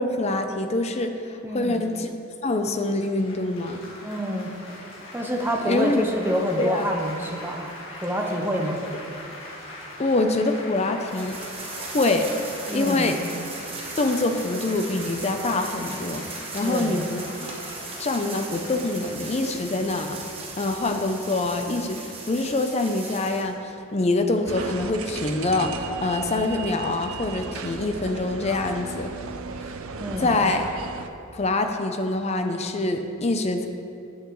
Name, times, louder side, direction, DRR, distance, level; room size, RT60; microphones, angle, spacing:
voice 1, 0.0-2.1 2.4-3.8 5.7-6.0 6.6-6.9 10.0-11.4 11.7-12.4 12.7-13.2 14.0-17.5 18.0-20.2 20.6-29.1 30.2-30.7 31.3-33.7, left 2 dB, 30° left, 6 dB, 0.5 m, -25 dB
voice 2, 1.4-1.8 4.0-4.5 5.1-8.8 12.7-13.1 16.6-17.0 30.0-30.4, equal, 10° right, 1 dB, 0.7 m, -27 dB
Laughter / Applause / Chatter, 2.7-21.9, left 1 dB, 60° left, 1.8 m, -42 dB
sound 1, 11.1-23.5, right 3 dB, 25° right, 1.1 m, -38 dB
sound 2, 24.5-31.1, right 4 dB, 75° right, 0.5 m, -35 dB
9.7 x 8.2 x 3.1 m, 2.6 s
head